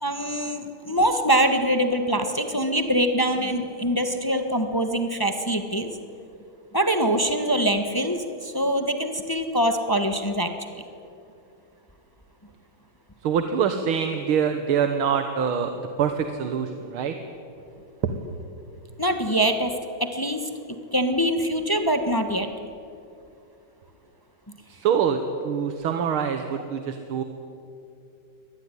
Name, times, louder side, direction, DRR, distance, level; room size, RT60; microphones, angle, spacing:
voice 1, 0.0-6.0 6.7-10.5 19.0-19.7 20.0-20.5 20.9-22.5, right 1 dB, 10° left, 7 dB, 1.2 m, -24 dB
voice 2, 13.2-17.1 18.0-18.1 24.7-27.2, right 7 dB, 80° right, 7 dB, 2.1 m, -25 dB
24.5 x 19.0 x 9.9 m, 2.6 s
omnidirectional pair, 2.3 m